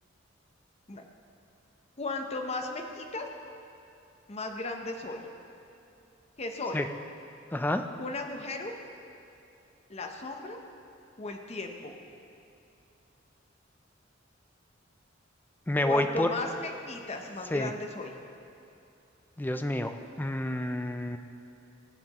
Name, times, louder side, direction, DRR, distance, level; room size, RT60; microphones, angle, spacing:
voice 1, 2.0-3.3 4.3-5.2 6.4-6.8 8.0-8.7 9.9-10.6 11.2-11.9 15.8-18.2, left 2 dB, 35° left, 3 dB, 0.7 m, -36 dB
voice 2, 7.5-7.8 15.7-16.3 17.5-17.7 19.4-19.9 20.2-21.2, left 1 dB, 10° left, 7 dB, 0.4 m, -28 dB
17.0 x 7.7 x 3.0 m, 2.7 s
head